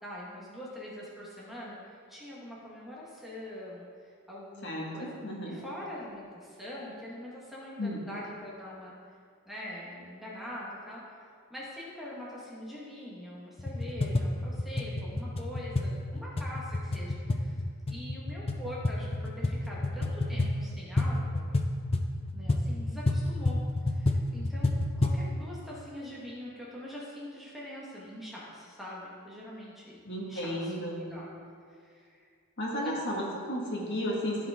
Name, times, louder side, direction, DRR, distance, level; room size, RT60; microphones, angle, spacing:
voice 1, 0.0-5.1 5.5-8.9 9.4-17.6 17.9-21.5 22.3-23.6 23.9-31.3 31.7-32.2 32.8-33.0, left 1 dB, ahead, -7 dB, 1.4 m, -43 dB
voice 2, 4.6-5.6 7.8-8.0 30.0-31.0 32.6-34.5, equal, 50° left, -3 dB, 1.6 m, -33 dB
sound 1, 13.6-25.3, left 2 dB, 25° left, 0.5 m, -30 dB
14.5 x 5.1 x 3.6 m, 2.2 s
head